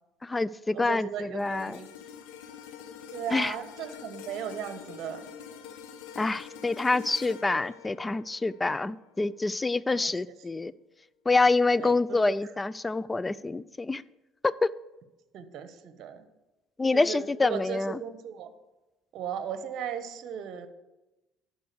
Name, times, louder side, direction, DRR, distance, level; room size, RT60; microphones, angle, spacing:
voice 1, 0.2-1.8 3.3-3.5 6.2-10.7 11.3-14.0 14.4-14.7 16.8-18.0, left 3 dB, 20° left, 19 dB, 0.4 m, -26 dB
voice 2, 0.7-1.9 3.1-5.3 9.9-10.1 11.8-12.4 15.3-16.2 16.9-18.5 19.1-20.7, right 8 dB, 60° right, 10 dB, 1.0 m, -37 dB
sound 1, 1.4-9.7 10.2-10.4, left 8 dB, 80° left, 1.0 m, -46 dB
11.5 x 4.6 x 6.7 m, 1.0 s
supercardioid pair, 70°, 0 cm